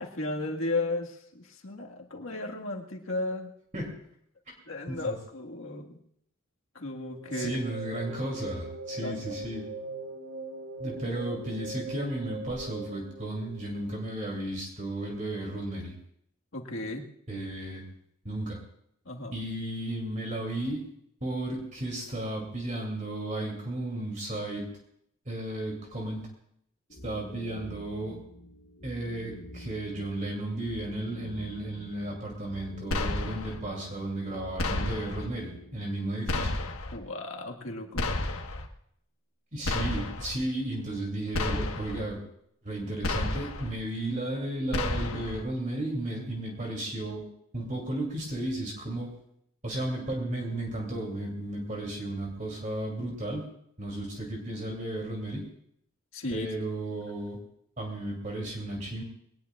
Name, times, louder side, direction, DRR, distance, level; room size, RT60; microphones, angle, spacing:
voice 1, 0.0-3.5 4.7-6.0 6.8-7.6 8.1-8.2 9.0-9.4 11.0-11.1 16.5-17.1 19.1-19.3 36.9-38.1 56.1-56.5, left 2 dB, 70° left, 1 dB, 1.7 m, -34 dB
sound 1, 6.9-14.2, right 2 dB, 85° right, 3.2 m, -41 dB
voice 2, 7.3-9.7 10.8-15.9 17.3-17.9 18.2-18.6 19.3-20.9 21.2-24.7 25.3-26.3 27.0-28.2 28.8-36.5 39.5-42.2 42.6-47.2 47.5-49.1 49.6-53.4 53.8-55.4 56.3-57.4 57.8-59.0, right 1 dB, 35° right, 0 dB, 2.8 m, -34 dB
sound 2, 26.9-36.1, equal, 45° left, 1.2 m, -47 dB
sound 3, 32.9-33.6 34.6-35.3 36.3-37.0 38.0-38.7 39.6-40.3 41.3-42.0 43.0-43.7 44.7-45.4, left 2 dB, 85° left, 1.4 m, -31 dB
22.0 x 18.5 x 2.4 m, 0.72 s
head